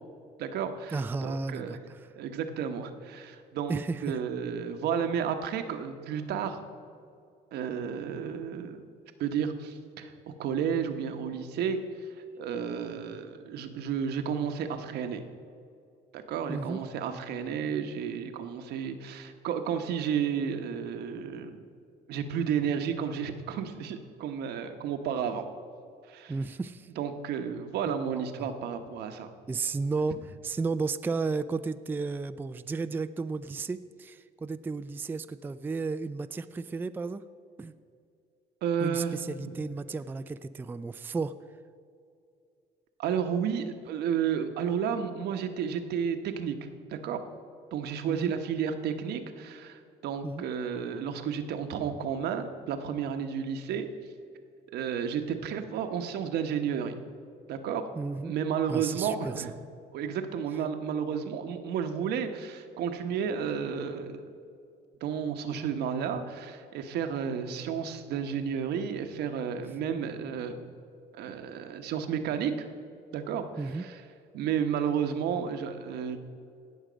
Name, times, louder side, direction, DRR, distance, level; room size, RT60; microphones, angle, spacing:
voice 1, 0.4-1.8 2.1-6.6 7.5-8.9 9.2-11.8 12.4-15.2 16.1-21.6 22.1-25.5 26.1-26.3 27.0-29.3 38.6-39.2 39.4-39.6 43.0-47.2 47.7-53.9 54.7-57.0 57.5-57.9 58.2-59.5 59.9-64.3 65.0-70.7 71.1-72.7 73.1-74.0 74.3-76.2, right 7 dB, 75° right, 7 dB, 1.0 m, -32 dB
voice 2, 0.9-2.1 3.7-4.2 16.5-16.8 26.3-26.9 28.1-28.5 29.5-37.2 37.6-37.7 38.8-41.3 48.1-48.3 50.2-50.5 58.0-58.3 58.7-59.4 73.6-73.9, right 4 dB, 10° right, 11 dB, 0.3 m, -33 dB
17.5 x 6.5 x 5.1 m, 2.5 s
cardioid pair, 110°, 17 cm